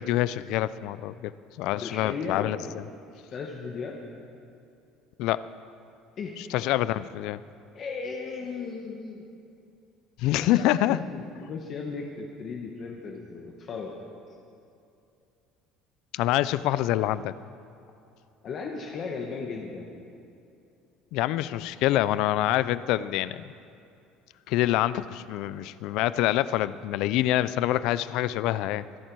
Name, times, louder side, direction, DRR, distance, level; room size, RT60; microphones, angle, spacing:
voice 1, 0.0-1.3 1.6-2.6 5.2-5.4 6.5-7.4 10.2-11.0 16.1-17.3 21.1-23.4 24.5-28.8, left 14 dB, 60° left, 16 dB, 0.4 m, -26 dB
voice 2, 1.8-2.7 3.3-4.0 6.2-6.3 7.7-9.2 10.4-14.0 18.4-19.9, left 4 dB, 30° left, 1 dB, 1.1 m, -36 dB
24.0 x 11.0 x 4.7 m, 2.6 s
cardioid pair, 175°, 0 cm